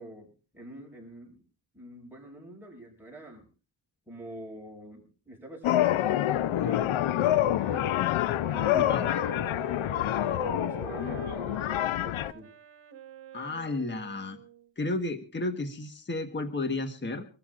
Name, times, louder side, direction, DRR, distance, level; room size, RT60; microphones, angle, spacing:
voice 1, 0.0-1.4 1.7-3.5 4.1-9.6 10.2-12.5, right 1 dB, 5° right, -1 dB, 6.3 m, -46 dB
sound 1, 5.6-12.3, left 13 dB, 85° left, 0.6 m, -27 dB
Wind instrument woodwind instrument, 6.3-14.7, right 6 dB, 60° right, 1.5 m, -45 dB
voice 2, 8.7-9.1 13.3-14.4 14.8-17.3, left 2 dB, 25° left, 8 dB, 1.4 m, -32 dB
25.5 x 14.0 x 2.5 m, 0.37 s
wide cardioid pair, 120°, 47 cm